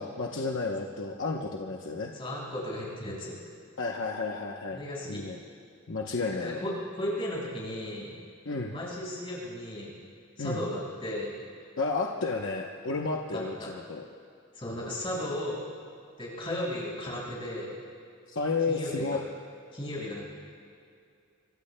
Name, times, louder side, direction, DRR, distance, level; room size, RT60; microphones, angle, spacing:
voice 1, 0.0-2.1 3.8-4.8 5.0-5.4 5.9-6.6 8.4-8.7 10.4-10.6 11.8-14.0 18.3-19.2, left 3 dB, 60° left, 0 dB, 0.9 m, -32 dB
voice 2, 2.1-3.4 4.7-5.2 6.4-6.7 7.0-8.1 8.7-9.9 10.4-11.3 13.3-13.7 14.5-15.6 16.2-17.7 18.7-19.1 19.7-20.2, left 1 dB, 25° left, -5 dB, 5.3 m, -35 dB
26.0 x 24.5 x 2.2 m, 2.4 s
head